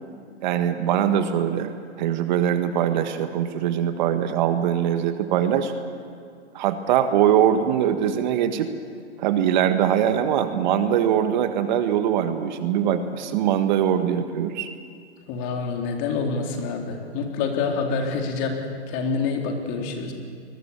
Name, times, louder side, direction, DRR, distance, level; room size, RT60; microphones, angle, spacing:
voice 1, 0.4-1.7 2.0-5.7 6.5-8.7 9.2-14.7, right 9 dB, 40° right, 9 dB, 1.4 m, -22 dB
voice 2, 15.3-18.6 18.9-20.1, left 4 dB, 35° left, 2 dB, 3.5 m, -27 dB
25.5 x 21.5 x 7.1 m, 2.3 s
hypercardioid pair, 135°, 34 cm